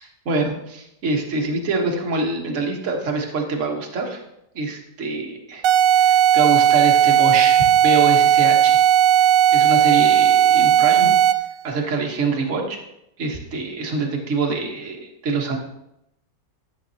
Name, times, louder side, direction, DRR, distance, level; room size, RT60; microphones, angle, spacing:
voice 1, 0.2-4.2 4.5-5.6 5.9-8.8 9.5-11.1 11.6-12.8 13.2-15.6, right 3 dB, 45° right, 1 dB, 1.5 m, -25 dB
sound 1, 5.6-11.5, right 10 dB, 70° right, 0.8 m, -15 dB
11.5 x 7.3 x 2.8 m, 0.82 s
omnidirectional pair, 1.9 m